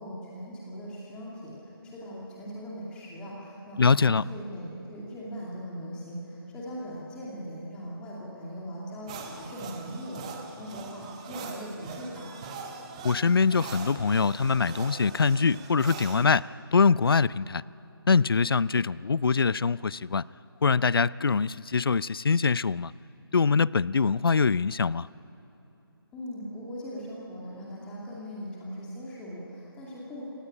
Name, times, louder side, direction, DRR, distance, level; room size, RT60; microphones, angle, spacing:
voice 1, 0.0-12.4 26.1-30.2, equal, 5° left, -5 dB, 2.4 m, -40 dB
voice 2, 3.8-4.2 13.0-16.5 16.7-17.6 18.1-20.2 20.6-22.9 23.3-25.1, left 5 dB, 65° left, 21 dB, 0.5 m, -23 dB
sound 1, 9.1-16.3, right 5 dB, 15° right, 1.1 m, -42 dB
25.5 x 17.5 x 10.0 m, 3.0 s
figure-of-eight pair, 165°, 13 cm